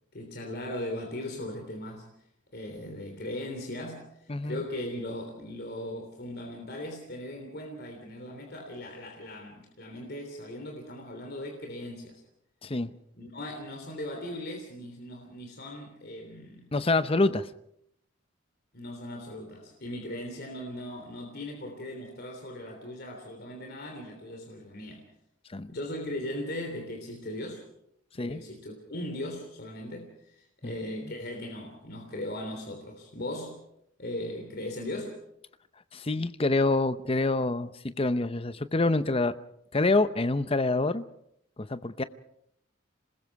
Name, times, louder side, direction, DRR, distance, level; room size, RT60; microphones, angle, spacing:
voice 1, 0.1-2.1 2.5-12.2 13.1-16.7 18.7-25.0 25.7-27.6 28.1-33.6 34.0-35.2, left 1 dB, 50° left, 3.3 m, -38 dB
voice 2, 4.3-4.6 12.6-12.9 16.7-17.5 25.5-25.7 28.2-28.4 30.6-30.7 35.9-39.3 39.7-41.0 41.6-42.0, left 2 dB, 25° left, 0.7 m, -26 dB
27.0 x 21.0 x 4.7 m
head